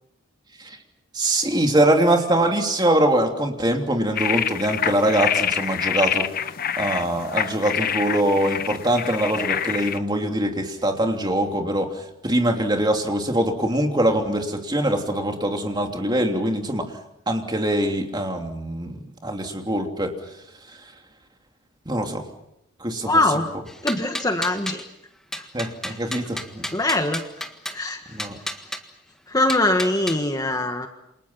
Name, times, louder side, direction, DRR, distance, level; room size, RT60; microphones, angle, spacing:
voice 1, 1.1-6.3 6.8-16.9 17.3-20.1 20.7-20.8 21.8-22.3 22.8-23.2 25.5-26.7 28.1-28.4, right 1 dB, 20° right, 3 dB, 3.1 m, -23 dB
sound 1, 4.2-10.0, left 9 dB, 45° left, 0.9 m, -26 dB
voice 2, 23.0-23.5 23.8-24.9 25.4-25.5 25.9-26.0 26.7-27.5 27.7-28.2 29.3-30.9, left 2 dB, 20° left, 5 dB, 1.6 m, -23 dB
sound 2, 23.7-24.9 25.3-27.8 28.2-28.8 29.5-30.2, equal, 5° left, 1.6 m, -33 dB
29.0 x 27.0 x 5.8 m, 0.81 s
head